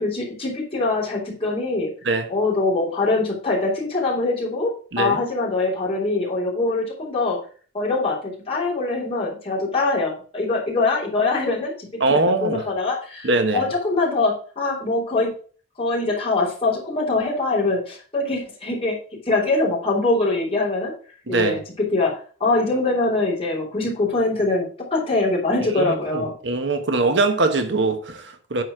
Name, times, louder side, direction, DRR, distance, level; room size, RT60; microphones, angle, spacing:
voice 1, 0.0-1.9 2.3-7.4 7.7-15.3 15.8-19.0 19.2-20.9 21.3-22.1 22.4-26.3, left 3 dB, 30° left, 3.3 m, -23 dB
voice 2, 12.0-12.7 13.2-13.7 21.3-21.6 25.7-28.6, right 3 dB, 70° right, 1.1 m, -22 dB
9.4 x 4.2 x 6.0 m
head